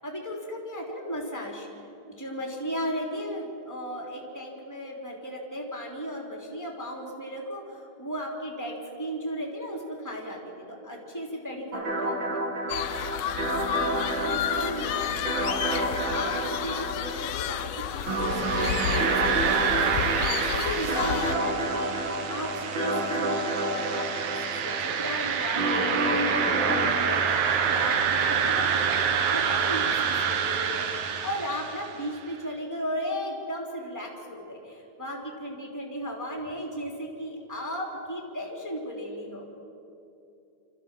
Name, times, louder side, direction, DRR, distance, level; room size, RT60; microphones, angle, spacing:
voice 1, 0.0-1.7 2.1-12.5 13.7-19.5 19.8-28.9 29.3-39.5, equal, 5° left, -1 dB, 3.0 m, -36 dB
sound 1, 11.7-26.9, right 1 dB, 40° right, 2.7 m, -30 dB
sound 2, 12.7-21.4, left 11 dB, 80° left, 1.5 m, -31 dB
sound 3, 18.1-32.0, right 7 dB, 75° right, 2.6 m, -27 dB
27.5 x 14.0 x 7.5 m, 2.7 s
omnidirectional pair, 3.5 m